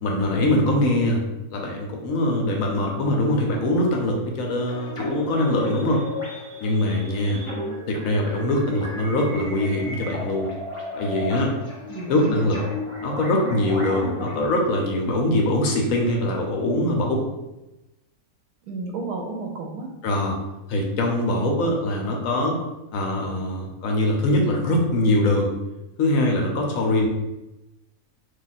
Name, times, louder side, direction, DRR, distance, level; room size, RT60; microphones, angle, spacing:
voice 1, 0.0-1.2 1.5-6.0 6.6-7.4 7.9-10.5 10.9-11.5 12.1-12.6 13.0-17.2 20.0-20.4 20.7-22.6 22.9-25.5 26.0-27.1, left 1 dB, 70° left, 0 dB, 1.0 m, -22 dB
sound 1, 4.7-14.4, left 2 dB, 30° left, 0.7 m, -35 dB
voice 2, 7.3-7.8 11.9-12.6 18.7-19.9 21.6-21.7, right 3 dB, 85° right, 2 dB, 1.2 m, -33 dB
2.8 x 2.3 x 4.0 m, 0.98 s
omnidirectional pair, 1.6 m